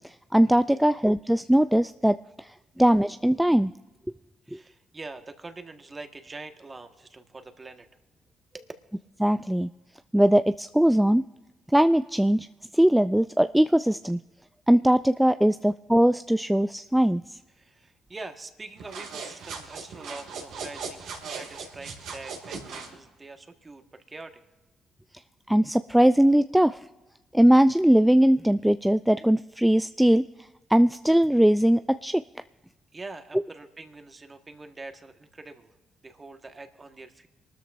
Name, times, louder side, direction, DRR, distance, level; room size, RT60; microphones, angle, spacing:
voice 1, 0.0-3.7 4.5-4.6 9.2-9.7 10.1-11.2 11.7-12.5 12.7-14.2 14.7-17.4 25.5-26.8 27.3-30.2 30.7-32.2, right 1 dB, 5° right, 11 dB, 0.4 m, -20 dB
voice 2, 4.4-7.9 8.5-8.7 15.4-15.5 17.5-24.4 32.9-35.8 36.0-37.3, right 3 dB, 30° right, 7 dB, 1.6 m, -44 dB
sound 1, 18.8-22.9, right 5 dB, 75° right, 2.4 m, -38 dB
26.0 x 13.0 x 2.6 m, 1.1 s
hypercardioid pair, 45°, 0 cm